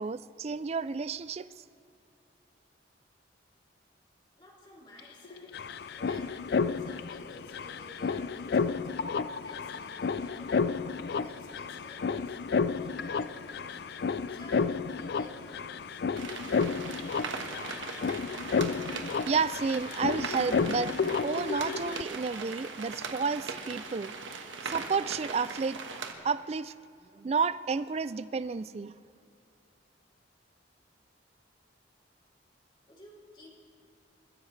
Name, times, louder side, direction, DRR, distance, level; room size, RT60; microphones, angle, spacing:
voice 1, 0.0-1.5 19.3-24.1 24.6-25.8 26.2-26.7 27.1-28.9, right 5 dB, 35° right, 16 dB, 0.3 m, -31 dB
voice 2, 4.4-5.5 6.0-6.5 6.8-8.9 9.4-10.7 11.1-12.4 12.8-13.8 14.3-16.1 32.9-33.6, left 1 dB, 25° left, -3 dB, 3.1 m, -54 dB
sound 1, 5.0-5.1 5.2-22.0, left 5 dB, 55° left, 0.4 m, -32 dB
sound 2, 16.2-26.1, right 4 dB, 90° right, 1.4 m, -39 dB
28.5 x 15.0 x 3.3 m, 2.5 s
head